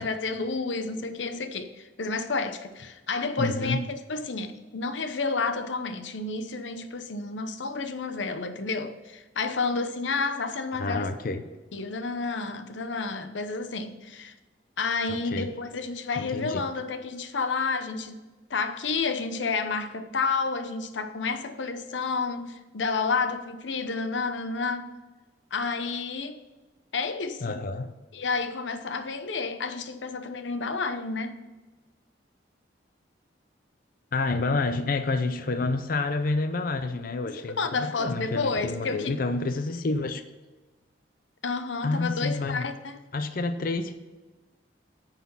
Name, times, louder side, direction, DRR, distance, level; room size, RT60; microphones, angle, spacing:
voice 1, 0.0-11.1 11.7-14.3 14.8-18.2 18.5-24.9 25.5-26.4 26.9-27.6 28.1-31.4 37.2-39.1 41.4-43.0, left 4 dB, 85° left, 0.8 m, -30 dB
voice 2, 3.4-3.8 10.8-11.4 15.1-15.5 16.2-16.6 27.4-27.9 34.1-40.2 41.8-42.7 43.1-43.9, left 3 dB, 50° left, 0.5 m, -29 dB
9.4 x 4.1 x 7.0 m
head